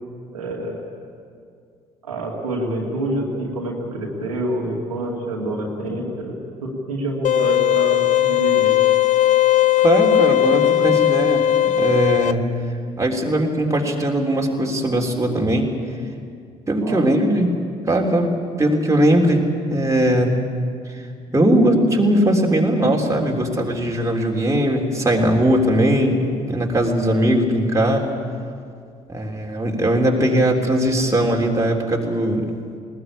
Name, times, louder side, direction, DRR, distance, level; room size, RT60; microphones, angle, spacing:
voice 1, 0.3-0.8 2.0-6.3 6.6-8.7 16.8-17.1, right 1 dB, 85° right, -2 dB, 2.6 m, -27 dB
sound 1, 7.2-12.3, left 12 dB, 45° left, 0.6 m, -17 dB
voice 2, 9.8-11.4 11.8-12.4 13.0-15.7 16.7-20.3 20.9-28.1 29.1-32.4, right 1 dB, 15° right, 0 dB, 3.5 m, -19 dB
20.0 x 18.5 x 8.6 m, 2.3 s
figure-of-eight pair, 50°, 18 cm